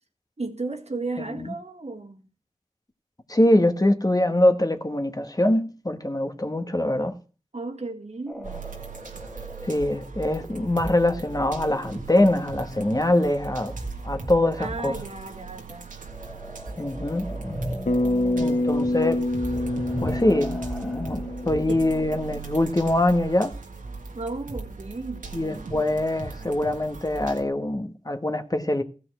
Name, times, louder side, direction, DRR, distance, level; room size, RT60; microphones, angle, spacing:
voice 1, 0.4-2.3 7.5-8.6 14.6-15.9 17.7-18.6 21.3-21.4 21.7-21.8 24.1-25.3, right 3 dB, 55° right, 1.9 m, -34 dB
voice 2, 3.3-7.2 9.6-13.8 14.0-15.0 16.8-17.3 18.4-19.3 20.0-23.5 25.3-28.8, left 1 dB, 30° left, 1.5 m, -23 dB
sound 1, 8.3-13.4 15.9-22.3, equal, 5° left, 1.9 m, -39 dB
sound 2, 8.4-27.4, right 4 dB, 90° right, 1.9 m, -38 dB
Bass guitar, 17.9-22.2, left 1 dB, 70° left, 1.5 m, -26 dB
15.0 x 5.5 x 7.9 m
cardioid pair, 40°, 13 cm